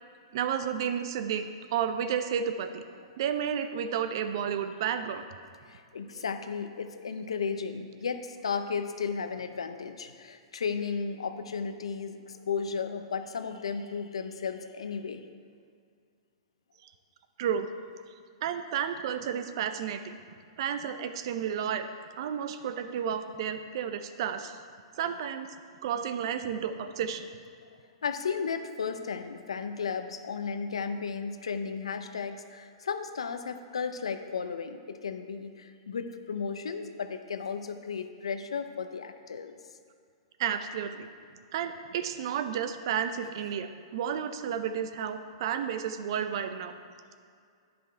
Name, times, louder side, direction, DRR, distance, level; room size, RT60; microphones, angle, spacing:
voice 1, 0.3-1.4 1.7-2.8 3.2-5.2 17.4-17.7 18.4-20.2 20.6-21.9 22.2-24.6 24.9-25.6 25.8-27.3 40.4-41.1 41.5-46.7, right 8 dB, 60° right, 9 dB, 0.6 m, -31 dB
voice 2, 5.7-15.3 27.6-39.6, left 5 dB, 90° left, 8 dB, 0.6 m, -34 dB
9.9 x 5.1 x 4.5 m, 2.2 s
hypercardioid pair, 130°, 3 cm